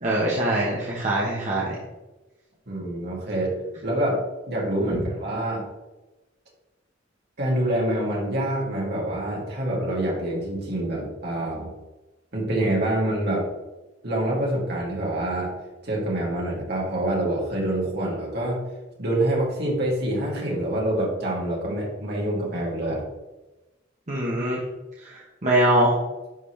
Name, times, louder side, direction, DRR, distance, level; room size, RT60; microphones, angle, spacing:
voice 1, 0.0-1.7 24.1-24.6 25.0-25.9, right 1 dB, 40° right, -5 dB, 1.3 m, -23 dB
voice 2, 2.7-3.5 3.8-5.7 7.4-11.7 12.3-13.5 14.0-15.6 15.8-18.6 19.0-23.0, right 1 dB, 55° right, -4 dB, 2.7 m, -26 dB
11.0 x 4.2 x 3.4 m, 1.1 s
head